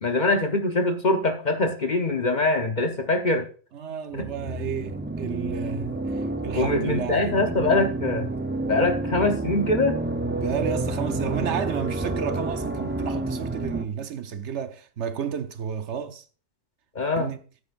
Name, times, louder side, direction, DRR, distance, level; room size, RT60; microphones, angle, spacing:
voice 1, 0.0-3.5 4.1-4.3 6.5-8.3 8.7-10.0 16.9-17.3, left 2 dB, 40° left, 0.9 m, -23 dB
voice 2, 3.7-7.4 10.4-16.3 17.2-17.4, right 7 dB, 70° right, 1.0 m, -32 dB
sound 1, 4.1-13.9, right 2 dB, 15° right, 0.4 m, -29 dB
14.5 x 8.5 x 2.5 m
omnidirectional pair, 1.3 m